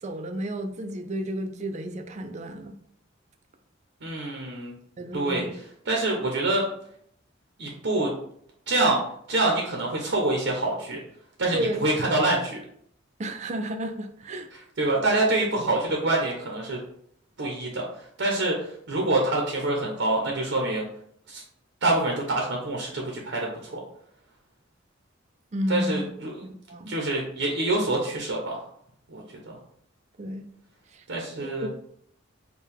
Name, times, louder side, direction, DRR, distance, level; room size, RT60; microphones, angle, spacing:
voice 1, 0.0-2.7 5.0-5.5 11.5-11.9 13.2-14.5 25.5-26.1 26.4-26.9 30.2-30.5 30.9-31.0 31.4-31.7, right 1 dB, 35° right, 7 dB, 0.4 m, -32 dB
voice 2, 4.0-4.7 5.1-5.5 5.8-6.6 7.6-8.1 8.7-9.0 9.3-11.0 11.4-12.6 14.8-16.8 17.4-17.9 18.2-20.9 21.3-21.4 21.8-23.8 25.7-26.3 26.9-28.6 29.1-29.6 31.1-31.7, right 2 dB, 60° right, 0 dB, 0.7 m, -26 dB
4.5 x 2.2 x 3.4 m, 0.67 s
head